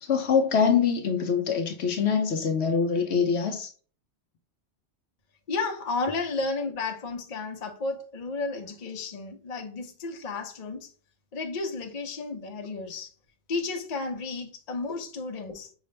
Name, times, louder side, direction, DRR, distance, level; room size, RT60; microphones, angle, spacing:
voice 1, 0.0-3.7, left 6 dB, 70° left, 0.8 m, -24 dB
voice 2, 5.5-10.9 11.3-13.1 13.5-15.7, left 3 dB, 40° left, 0.7 m, -32 dB
5.3 x 2.4 x 3.1 m
omnidirectional pair, 1.2 m